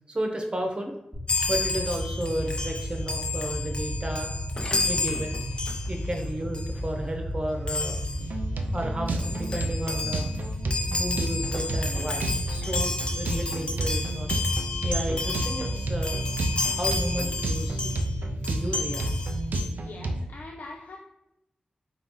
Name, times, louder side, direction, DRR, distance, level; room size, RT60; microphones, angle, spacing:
voice 1, 0.1-0.9 1.5-4.3 4.8-5.3 5.9-8.0 8.7-10.3 11.0-14.3 14.8-16.2 16.7-17.9 18.5-19.1, right 1 dB, 35° right, 2 dB, 0.8 m, -32 dB
sound 1, 1.1-19.6, equal, 10° right, 1.0 m, -34 dB
Chime, 1.3-6.2 6.5-6.8 7.7-8.3 8.8-8.9 9.1-18.1 18.4-19.7, left 3 dB, 35° left, 0.6 m, -32 dB
sound 2, 8.2-20.2, right 2 dB, 80° right, 0.4 m, -32 dB
voice 2, 19.8-21.0, left 2 dB, 80° left, 1 dB, 0.3 m, -42 dB
3.8 x 2.6 x 3.7 m, 0.86 s
cardioid pair, 45°, 3 cm